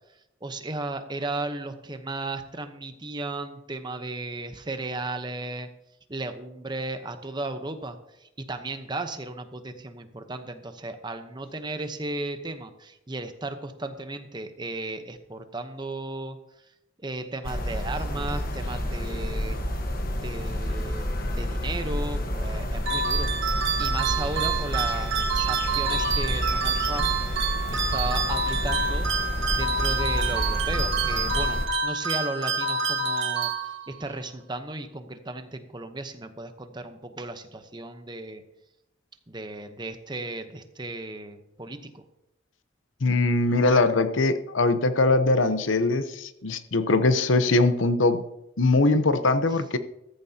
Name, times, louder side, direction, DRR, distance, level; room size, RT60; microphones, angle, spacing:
voice 1, 0.4-5.7 6.1-16.4 17.0-19.6 20.1-21.1 21.3-27.1 27.9-29.1 29.5-33.5 33.9-38.4 39.3-42.0, right 2 dB, 25° right, 8 dB, 0.9 m, -35 dB
sound 1, 17.4-31.7, left 1 dB, 50° left, 1.3 m, -29 dB
sound 2, 22.9-34.1, right 4 dB, 85° right, 1.9 m, -27 dB
voice 2, 43.0-48.2 48.6-49.8, left 2 dB, 90° left, 11 dB, 0.8 m, -22 dB
14.5 x 14.5 x 2.9 m, 0.87 s
head